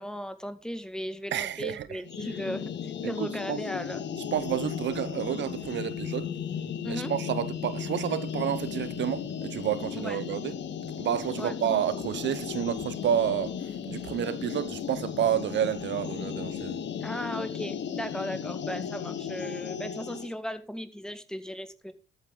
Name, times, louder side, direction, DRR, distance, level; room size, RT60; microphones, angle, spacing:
voice 1, 0.0-4.0 6.8-7.1 10.0-10.2 11.4-11.5 17.0-21.9, equal, 5° left, 1.8 m, -36 dB
voice 2, 1.3-2.0 3.2-3.6 4.3-6.3 6.9-10.5 11.0-16.8, right 10 dB, 65° right, 0.9 m, -30 dB
sound 1, 2.0-20.3, left 8 dB, 65° left, 1.6 m, -35 dB
13.5 x 9.1 x 3.8 m
cardioid pair, 90°, 20 cm